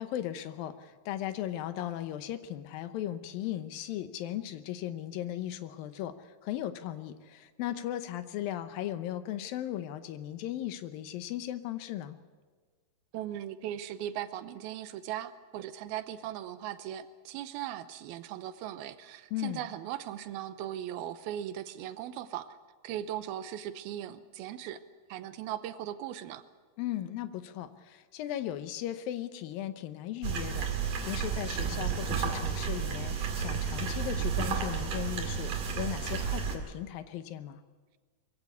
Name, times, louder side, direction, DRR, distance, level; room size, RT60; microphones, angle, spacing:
voice 1, 0.0-12.2 19.3-19.7 26.8-37.6, left 12 dB, 80° left, 11 dB, 2.6 m, -37 dB
voice 2, 13.1-22.6 22.8-24.8 25.1-26.4, right 11 dB, 90° right, 12 dB, 2.8 m, -38 dB
sound 1, 30.2-36.6, right 6 dB, 65° right, 3.6 m, -32 dB
22.0 x 15.5 x 8.3 m, 1.4 s
omnidirectional pair, 4.2 m